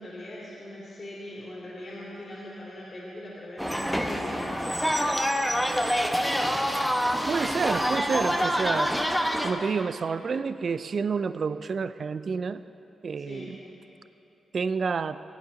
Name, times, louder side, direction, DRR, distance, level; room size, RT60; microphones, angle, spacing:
voice 1, 0.0-5.7 13.2-13.6, left 1 dB, 55° left, -7 dB, 2.8 m, -41 dB
sound 1, 3.6-9.5, equal, ahead, 1.0 m, -26 dB
voice 2, 7.1-8.9 9.4-12.6 13.0-13.6 14.5-15.2, right 5 dB, 60° right, 14 dB, 0.3 m, -29 dB
16.5 x 9.5 x 3.9 m, 2.9 s
supercardioid pair, 50°, 0 cm